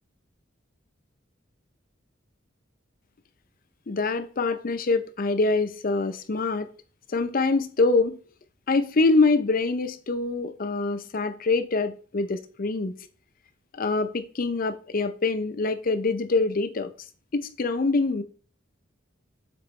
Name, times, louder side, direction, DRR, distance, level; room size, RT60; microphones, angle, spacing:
voice 1, 3.9-6.7 7.1-8.2 8.7-12.9 13.8-16.9 17.3-18.2, left 3 dB, 45° left, 0.5 m, -25 dB
6.8 x 4.4 x 3.1 m
head